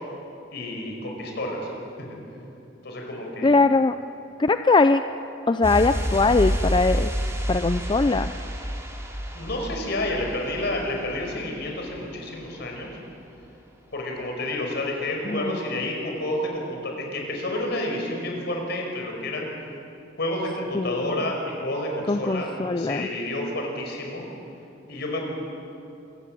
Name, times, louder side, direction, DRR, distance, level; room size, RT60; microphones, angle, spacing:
voice 1, 0.5-1.7 2.8-3.5 9.3-12.9 13.9-19.5 20.2-22.5 22.8-24.2 24.9-25.2, left 1 dB, 60° left, 1 dB, 5.2 m, -29 dB
voice 2, 3.4-4.0 4.4-5.0 5.5-7.1 7.5-8.3 15.3-15.6 20.7-21.3 22.1-23.1, left 3 dB, 25° left, 10 dB, 0.4 m, -21 dB
sound 1, 5.6-12.1 12.4-12.5, equal, 15° right, 2.9 m, -29 dB
27.0 x 17.0 x 7.6 m, 2.8 s
head